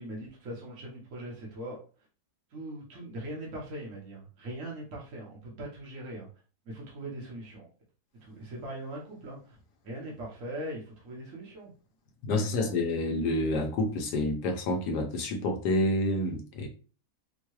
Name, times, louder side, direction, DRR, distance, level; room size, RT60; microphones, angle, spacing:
voice 1, 0.0-1.8 2.5-6.3 6.6-7.7 8.2-9.6 9.8-11.7 12.5-12.7, right 1 dB, 55° right, -3 dB, 1.3 m, -40 dB
voice 2, 12.2-16.7, left 1 dB, 75° left, 3 dB, 1.3 m, -28 dB
4.5 x 2.3 x 3.1 m, 0.37 s
omnidirectional pair, 1.8 m